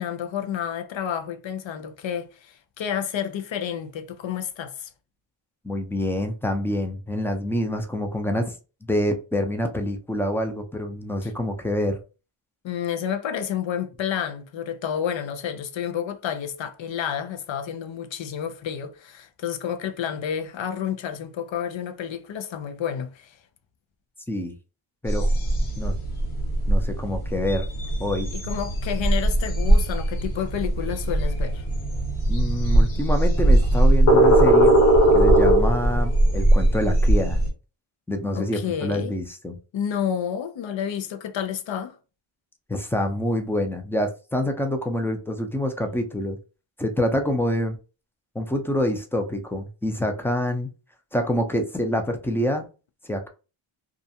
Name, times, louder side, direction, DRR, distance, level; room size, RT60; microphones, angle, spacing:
voice 1, 0.0-4.9 11.2-11.3 12.6-23.4 28.3-31.6 38.3-39.1 39.7-42.0, left 8 dB, 65° left, 0.6 m, -30 dB
voice 2, 5.6-8.5 8.8-12.0 24.3-24.5 25.0-25.3 25.8-26.0 26.7-27.7 28.0-28.3 32.3-34.8 35.1-37.4 38.1-39.6 42.7-46.4 46.8-47.8 48.3-50.7 51.1-52.7 53.0-53.3, left 1 dB, 5° left, 0.4 m, -26 dB
sound 1, 25.1-37.5, right 1 dB, 85° left, 1.2 m, -19 dB
2.4 x 2.2 x 2.7 m
wide cardioid pair, 75°, 50 cm